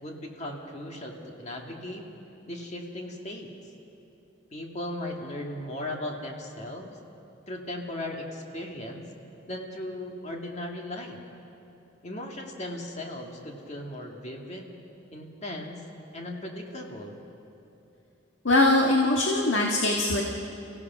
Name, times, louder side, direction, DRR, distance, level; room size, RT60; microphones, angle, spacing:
voice 1, 0.0-2.1 2.5-3.5 4.5-7.0 7.5-9.1 9.5-11.2 12.0-14.8 15.1-15.8 16.1-17.2, left 1 dB, 35° left, 1 dB, 2.0 m, -37 dB
voice 2, 18.4-20.2, left 2 dB, 75° left, 0 dB, 1.6 m, -22 dB
29.0 x 16.0 x 6.0 m, 2.9 s
head